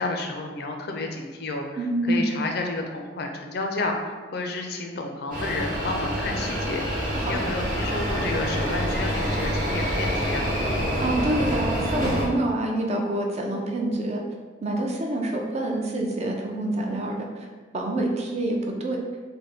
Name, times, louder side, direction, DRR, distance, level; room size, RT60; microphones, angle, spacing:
voice 1, 0.0-1.6 2.1-10.5, left 2 dB, 65° left, 3 dB, 0.4 m, -31 dB
voice 2, 1.8-2.3 7.1-7.3 11.0-14.2 14.6-17.5 17.7-19.0, right 1 dB, 40° right, 1 dB, 0.5 m, -26 dB
sound 1, 5.3-12.2, equal, 55° right, 1.1 m, -27 dB
3.4 x 2.1 x 4.0 m, 1.4 s
head